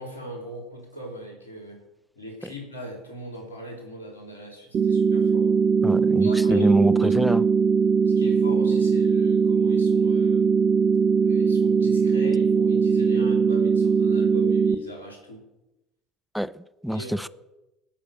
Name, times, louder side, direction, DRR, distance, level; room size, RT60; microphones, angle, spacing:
voice 1, 0.0-1.8 2.2-5.5 6.2-7.4 8.1-10.5 11.2-15.4 16.9-17.1, right 1 dB, 90° left, 3.6 m, -39 dB
sound 1, 4.7-14.8, right 6 dB, 45° right, 1.3 m, -20 dB
voice 2, 5.8-7.5 16.3-17.3, equal, ahead, 0.5 m, -25 dB
16.0 x 6.3 x 9.1 m
hypercardioid pair, 65°, 0 cm